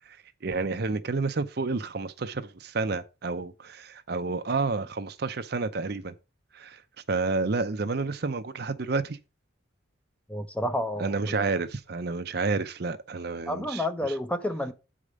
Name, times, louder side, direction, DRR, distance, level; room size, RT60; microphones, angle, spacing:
voice 1, 0.4-6.1 6.5-6.8 7.1-9.2 11.0-14.1, right 3 dB, 50° right, 0.6 m, -30 dB
voice 2, 10.3-11.5 13.5-14.7, left 1 dB, 5° left, 0.6 m, -30 dB
8.4 x 5.0 x 5.1 m
head